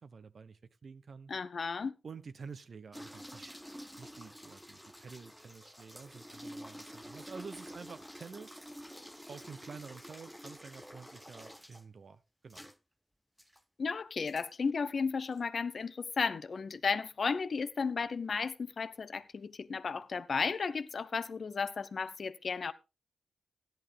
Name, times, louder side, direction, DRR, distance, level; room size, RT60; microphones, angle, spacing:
voice 1, 0.0-1.3 2.0-3.5 4.0-8.6 9.3-12.7, right 5 dB, 60° right, 0.7 m, -49 dB
voice 2, 1.3-2.0 13.8-22.7, left 5 dB, 60° left, 0.7 m, -34 dB
sound 1, 2.9-11.8 12.5-12.8 13.4-13.6 14.3-14.5 15.2-15.4, equal, ahead, 0.6 m, -49 dB
14.0 x 10.5 x 3.5 m
supercardioid pair, 45°, 0 cm